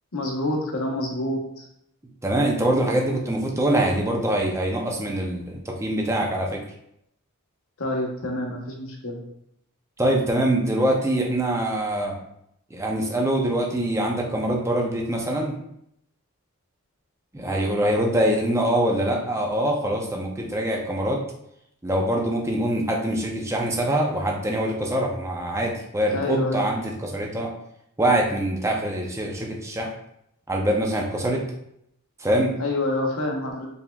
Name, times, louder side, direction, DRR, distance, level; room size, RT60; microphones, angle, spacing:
voice 1, 0.1-1.6 7.8-9.2 26.1-26.7 32.6-33.7, left 1 dB, 65° left, 1 dB, 0.9 m, -27 dB
voice 2, 2.2-6.6 10.0-12.2 12.7-15.6 17.3-21.2 21.8-27.5 28.0-29.9 30.5-31.5 32.2-32.6, right 1 dB, 15° right, 0 dB, 0.5 m, -24 dB
4.2 x 3.5 x 2.3 m, 0.75 s
head